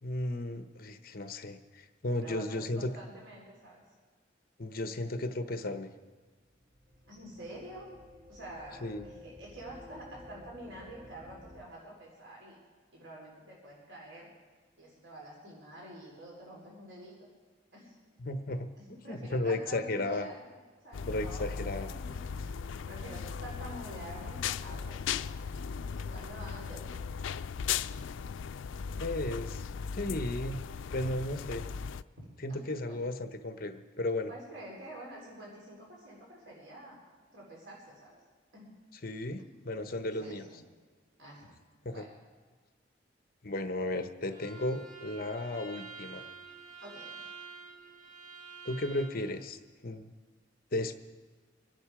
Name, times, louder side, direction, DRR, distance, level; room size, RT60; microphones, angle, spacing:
voice 1, 0.0-2.9 4.6-5.9 8.8-9.1 18.2-20.3 21.0-21.9 29.0-29.7 29.9-30.6 30.9-31.6 32.4-34.3 39.0-40.4 41.8-42.1 43.4-46.2 48.6-49.6 49.8-50.1 50.7-50.9, left 2 dB, 50° left, 8 dB, 1.0 m, -34 dB
voice 2, 2.2-3.8 7.1-7.9 8.3-12.6 12.9-14.3 14.8-17.2 17.7-18.0 18.8-25.3 25.9-27.0 32.2-33.0 34.3-37.0 37.3-38.2 38.5-38.7 39.4-39.5 40.2-40.6 41.2-41.5 41.9-42.1 46.8-47.2, right 1 dB, 90° right, -2 dB, 4.2 m, -48 dB
sound 1, 6.5-11.6, left 1 dB, 25° right, 2.1 m, -53 dB
sound 2, 20.9-32.0, left 6 dB, 90° left, 0.4 m, -37 dB
Bowed string instrument, 44.3-49.2, right 5 dB, 45° right, 4.2 m, -48 dB
24.5 x 10.5 x 5.0 m, 1.5 s
head